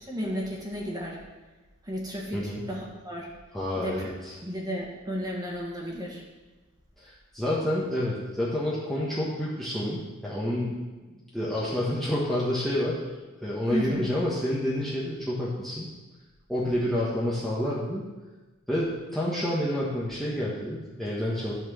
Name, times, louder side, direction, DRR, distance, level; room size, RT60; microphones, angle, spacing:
voice 1, 0.1-1.2 1.8-3.3 3.7-4.1 4.4-6.2 13.7-14.1, equal, 20° right, -2 dB, 1.7 m, -33 dB
voice 2, 3.5-4.3 7.0-10.8 11.0-13.0 13.4-15.9 16.5-18.0 18.7-21.5, left 1 dB, ahead, -7 dB, 1.2 m, -29 dB
11.5 x 4.5 x 6.2 m, 1.2 s
head